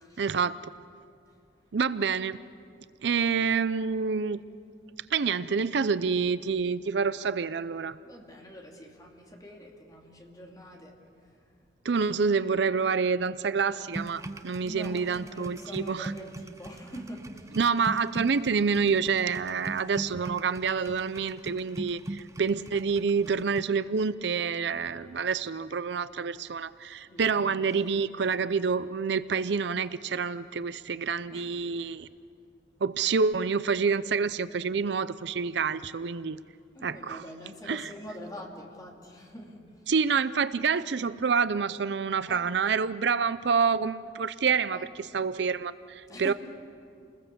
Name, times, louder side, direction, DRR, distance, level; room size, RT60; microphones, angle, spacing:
voice 1, 0.2-0.6 1.7-2.4 3.0-4.4 5.1-8.0 11.8-16.1 17.6-32.1 32.8-36.4 36.8-37.2 37.7-37.9 39.9-46.3, right 5 dB, 65° right, 15 dB, 0.5 m, -27 dB
voice 2, 8.0-11.5 14.6-17.6 21.6-22.0 27.1-27.8 31.3-31.9 36.7-39.9 42.3-42.5 44.7-44.9 46.1-46.3, equal, 20° left, 0 dB, 2.8 m, -45 dB
sound 1, 13.9-23.6, right 1 dB, 15° right, 0.6 m, -41 dB
29.0 x 20.5 x 6.9 m, 2.4 s
head